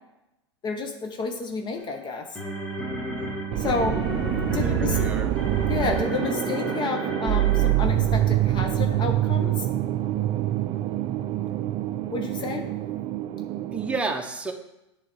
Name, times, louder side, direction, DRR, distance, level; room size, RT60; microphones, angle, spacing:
voice 1, 0.6-2.4 3.6-4.1 4.5-5.0 5.7-9.7 12.1-12.7, left 4 dB, 30° left, 4 dB, 0.9 m, -30 dB
sound 1, 1.8-8.2, equal, 10° left, 1.8 m, -33 dB
sound 2, 3.5-14.0, right 13 dB, 40° right, 0.4 m, -25 dB
voice 2, 4.6-5.3 13.7-14.5, right 3 dB, 10° right, 3 dB, 0.9 m, -30 dB
8.3 x 3.3 x 5.9 m, 0.91 s
hypercardioid pair, 105°, 15 cm